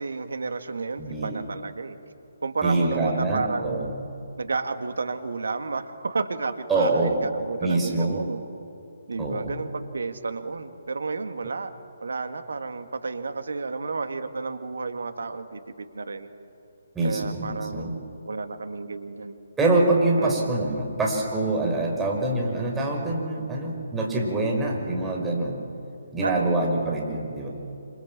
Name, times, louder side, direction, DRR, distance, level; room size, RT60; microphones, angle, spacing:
voice 1, 0.0-2.0 2.4-3.9 4.4-8.4 9.1-11.7 12.0-16.3 17.0-19.4 20.2-20.6 26.2-26.7, right 4 dB, 70° right, 8 dB, 2.1 m, -31 dB
voice 2, 1.0-1.4 2.6-4.0 6.7-7.2 7.6-8.3 9.2-9.6 16.9-17.9 19.6-25.6 26.1-27.5, right 2 dB, 10° right, -1 dB, 5.5 m, -25 dB
27.5 x 27.0 x 7.6 m, 2.7 s
figure-of-eight pair, 140°, 0 cm